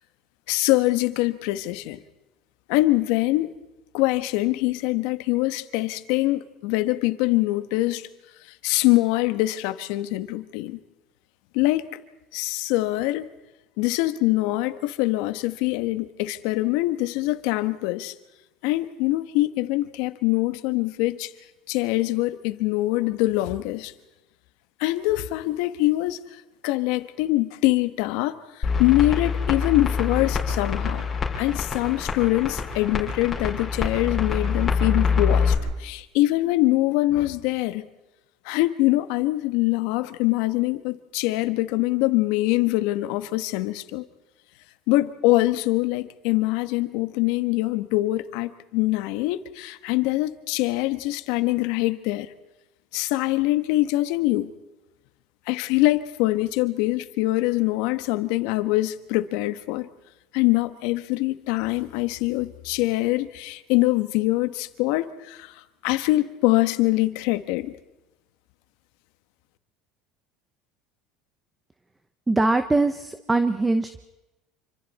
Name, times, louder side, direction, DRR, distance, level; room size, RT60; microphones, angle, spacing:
voice 1, 0.5-2.0 2.7-3.5 3.9-8.1 8.4-10.8 11.5-11.8 12.3-13.3 13.8-18.1 18.6-21.3 21.7-23.9 24.8-26.2 26.6-31.0 31.4-37.9 38.4-44.1 44.9-52.3 52.9-54.5 55.5-59.9 60.3-67.7, left 18 dB, 75° left, 1.3 m, -24 dB
sound 1, 28.6-35.5, left 5 dB, 25° left, 5.2 m, -25 dB
voice 2, 72.3-74.1, right 2 dB, 10° right, 0.9 m, -22 dB
27.5 x 25.5 x 4.3 m
supercardioid pair, 130°, 0 cm